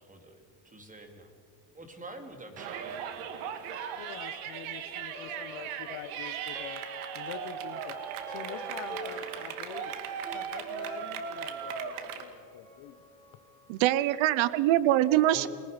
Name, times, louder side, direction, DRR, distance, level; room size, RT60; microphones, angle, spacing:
voice 1, 0.0-1.3 1.7-3.2 15.3-15.5, right 2 dB, 15° right, 5 dB, 3.2 m, -46 dB
Yell, 2.6-12.2, right 8 dB, 90° right, 2.4 m, -38 dB
voice 2, 4.0-6.8 7.1-8.0 8.3-9.9 10.3-13.0, left 10 dB, 70° left, 11 dB, 1.7 m, -45 dB
Plucked string instrument, 4.9-14.4, left 1 dB, 5° left, 5.7 m, -49 dB
voice 3, 13.7-15.5, right 14 dB, 70° right, 18 dB, 0.9 m, -23 dB
30.0 x 21.5 x 5.4 m, 2.1 s
cardioid pair, 130°, 48 cm